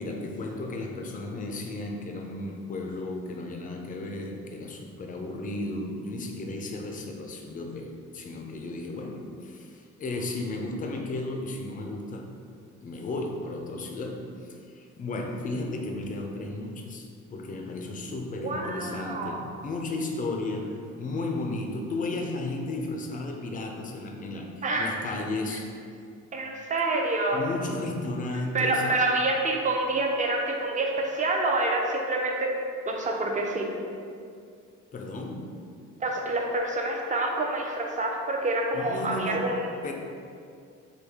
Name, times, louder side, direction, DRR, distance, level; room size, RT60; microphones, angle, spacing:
voice 1, 0.0-12.3 12.8-25.7 27.3-28.9 34.9-35.6 38.7-39.6 39.8-39.9, left 2 dB, 30° left, 2 dB, 0.4 m, -34 dB
voice 2, 18.4-19.4 24.6-24.9 26.3-27.4 28.5-32.5 32.9-33.7 36.0-39.7, right 2 dB, 25° right, 1 dB, 0.5 m, -27 dB
3.2 x 2.3 x 3.5 m, 2.3 s
cardioid pair, 90°, 30 cm